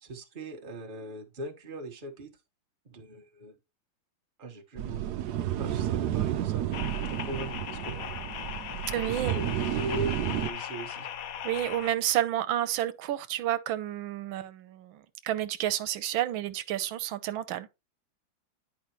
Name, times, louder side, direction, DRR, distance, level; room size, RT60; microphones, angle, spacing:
voice 1, 0.0-2.3 2.8-3.6 4.4-5.0 5.6-6.7 7.0-8.1 9.0-11.1, right 2 dB, 30° right, 1.3 m, -39 dB
sound 1, 4.8-10.5, right 12 dB, 65° right, 1.1 m, -31 dB
sound 2, 6.7-11.9, left 9 dB, 65° left, 0.9 m, -38 dB
voice 2, 8.9-9.4 11.4-17.7, right 12 dB, 90° right, 1.5 m, -30 dB
10.0 x 4.9 x 3.0 m
omnidirectional pair, 2.1 m